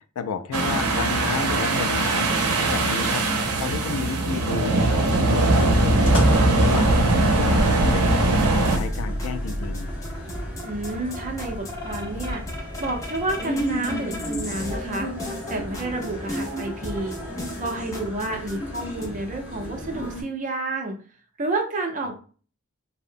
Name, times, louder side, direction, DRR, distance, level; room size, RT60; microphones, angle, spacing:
voice 1, 0.2-3.3 3.5-6.2 6.6-7.1 7.4-9.9, left 5 dB, 90° left, 10 dB, 0.3 m, -32 dB
sound 1, 0.5-8.8, right 2 dB, 90° right, 0.5 m, -21 dB
sound 2, 5.6-20.2, equal, 55° left, 1.3 m, -31 dB
sound 3, 8.2-19.1, left 1 dB, 15° left, 0.4 m, -38 dB
voice 2, 10.6-12.4 12.8-15.1 15.5-17.1 17.6-21.0 21.4-22.1, right 2 dB, 35° right, 3 dB, 0.5 m, -30 dB
2.7 x 2.0 x 2.5 m, 0.40 s
head